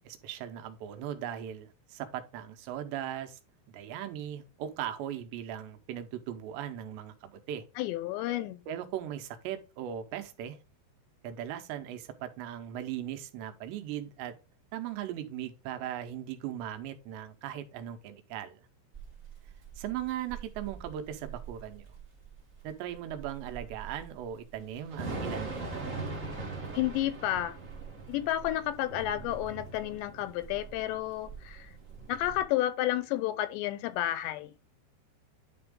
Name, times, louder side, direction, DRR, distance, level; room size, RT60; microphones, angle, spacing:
voice 1, 0.0-3.4 3.7-7.6 8.7-10.6 11.2-14.4 14.7-18.6 19.8-21.9 22.6-25.9, right 11 dB, 85° right, 3.1 m, -38 dB
voice 2, 7.8-8.6 26.7-27.6 28.1-31.7 32.1-34.5, left 13 dB, 85° left, 2.9 m, -31 dB
Thunder / Rain, 18.9-32.4, right 3 dB, 55° right, 0.8 m, -42 dB
10.5 x 3.5 x 3.7 m
omnidirectional pair, 5.0 m